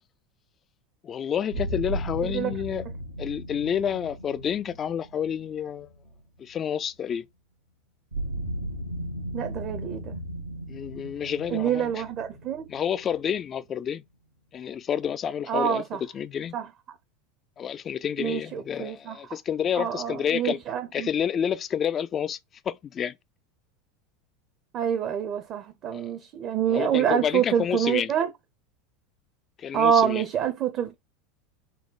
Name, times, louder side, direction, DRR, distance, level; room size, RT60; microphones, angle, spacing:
voice 1, 1.0-2.9 3.2-5.9 6.4-7.2 10.7-12.0 12.7-14.0 14.5-16.6 17.6-20.6 20.9-22.4 22.7-23.1 25.9-26.1 26.7-28.1 29.6-30.2, left 8 dB, 35° left, 0.4 m, -29 dB
sound 1, 1.5-6.5 8.1-13.8, right 1 dB, 85° right, 1.2 m, -36 dB
voice 2, 2.2-2.5 9.3-10.1 11.5-12.7 15.5-16.0 16.5-16.6 18.2-19.2 19.8-21.1 24.7-28.3 29.7-31.0, right 9 dB, 45° right, 0.7 m, -26 dB
4.2 x 2.2 x 3.8 m
hypercardioid pair, 85°, 0 cm